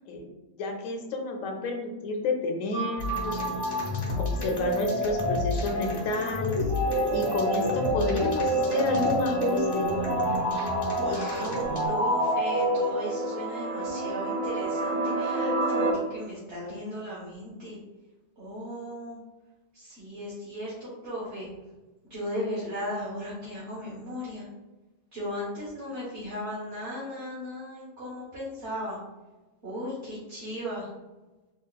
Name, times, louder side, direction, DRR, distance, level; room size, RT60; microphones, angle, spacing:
voice 1, 0.6-3.4 4.2-6.6 7.1-9.8, left 3 dB, 75° left, 3 dB, 1.0 m, -30 dB
sound 1, 2.7-13.5, equal, 20° right, 1.2 m, -28 dB
sound 2, 3.0-11.9, left 2 dB, 30° left, 0.5 m, -33 dB
sound 3, 10.4-15.9, right 2 dB, 75° right, 0.4 m, -31 dB
voice 2, 10.9-17.8 18.4-19.2 19.7-21.5 22.1-24.5 25.1-29.0 29.6-30.9, equal, 55° right, -8 dB, 1.4 m, -36 dB
3.7 x 3.3 x 2.3 m, 1.1 s
omnidirectional pair, 1.4 m